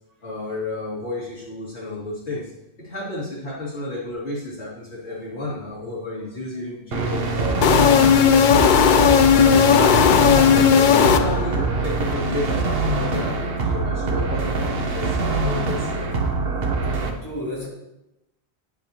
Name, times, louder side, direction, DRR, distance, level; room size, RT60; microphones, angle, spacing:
voice 1, 0.2-2.5 2.8-8.9 9.4-10.0 10.3-16.2, left 2 dB, 85° left, -7 dB, 2.8 m, -31 dB
sound 1, 6.9-17.1, right 3 dB, 65° right, 1.1 m, -24 dB
sound 2, 7.6-11.7, left 8 dB, 60° left, 0.6 m, -15 dB
voice 2, 8.4-8.7 12.1-12.2 17.0-17.7, left 1 dB, 25° left, -7 dB, 3.0 m, -36 dB
10.0 x 8.0 x 2.9 m, 0.89 s
omnidirectional pair, 1.1 m